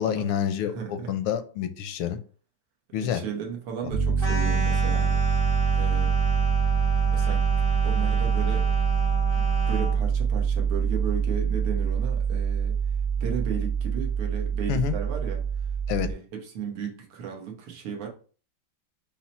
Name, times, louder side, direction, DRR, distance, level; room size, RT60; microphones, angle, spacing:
voice 1, 0.0-2.2 2.9-3.2 14.7-14.9 15.9-16.1, left 9 dB, 85° left, 10 dB, 1.5 m, -28 dB
voice 2, 0.6-1.1 3.0-5.2 5.7-6.1 7.1-8.7 9.4-12.8 13.2-15.4 16.0-18.1, right 7 dB, 85° right, 1 dB, 1.9 m, -35 dB
Piano, 3.9-16.1, right 6 dB, 60° right, 2.2 m, -25 dB
sound 1, 4.2-10.0, left 1 dB, 35° right, 0.4 m, -34 dB
5.6 x 2.1 x 4.2 m, 0.40 s
omnidirectional pair, 2.3 m